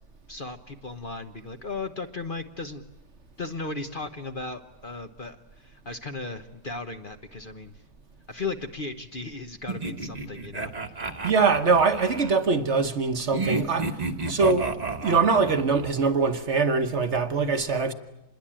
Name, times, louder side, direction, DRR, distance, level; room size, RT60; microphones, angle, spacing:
voice 1, 0.3-2.8 3.4-7.7 8.3-10.7, left 3 dB, 40° left, 1.1 m, -36 dB
sound 1, 9.7-12.4 13.3-15.9, right 3 dB, 30° right, 1.3 m, -32 dB
voice 2, 11.2-14.0 14.3-14.7 15.0-17.9, right 4 dB, 50° right, 1.3 m, -23 dB
27.0 x 21.5 x 8.8 m
omnidirectional pair, 1.7 m